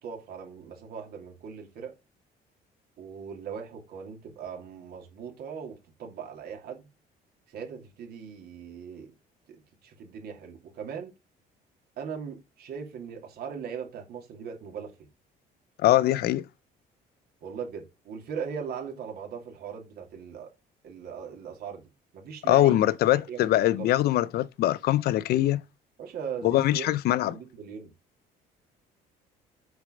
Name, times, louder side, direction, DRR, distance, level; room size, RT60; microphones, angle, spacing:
voice 1, 0.0-1.9 3.0-6.9 7.5-9.1 9.5-11.1 12.0-15.1 17.4-20.5 20.8-22.9 23.3-24.0 26.0-26.9 27.3-27.9, right 7 dB, 70° right, 2.5 m, -39 dB
voice 2, 15.8-16.4 22.5-25.6 26.4-27.4, left 14 dB, 70° left, 0.6 m, -23 dB
6.7 x 4.3 x 5.0 m
cardioid pair, 110°, 17 cm